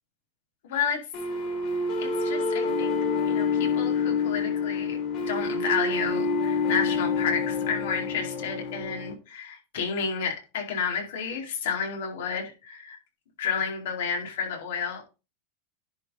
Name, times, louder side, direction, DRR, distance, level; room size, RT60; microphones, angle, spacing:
voice 1, 0.6-1.0 2.0-3.0 3.3-5.0 5.3-13.0 13.4-15.1, left 6 dB, 75° left, 1 dB, 4.4 m, -31 dB
sound 1, 1.1-9.1, left 4 dB, 50° left, 4.0 m, -27 dB
10.5 x 5.2 x 5.6 m, 0.31 s
supercardioid pair, 120°, 0 cm